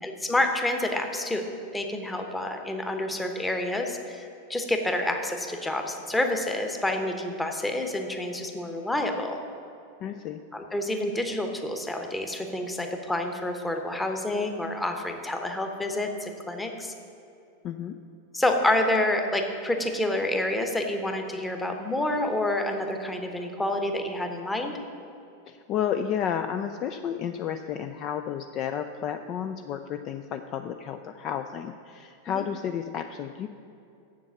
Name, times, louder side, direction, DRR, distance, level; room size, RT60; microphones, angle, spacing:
voice 1, 0.0-1.4 1.7-9.4 10.5-16.9 18.3-24.8 32.3-32.4, left 1 dB, 10° left, 4 dB, 1.0 m, -28 dB
voice 2, 10.0-10.4 17.6-18.0 25.5-33.5, left 8 dB, 35° left, 8 dB, 0.3 m, -32 dB
7.2 x 7.2 x 7.1 m, 2.6 s
figure-of-eight pair, 90°, 0 cm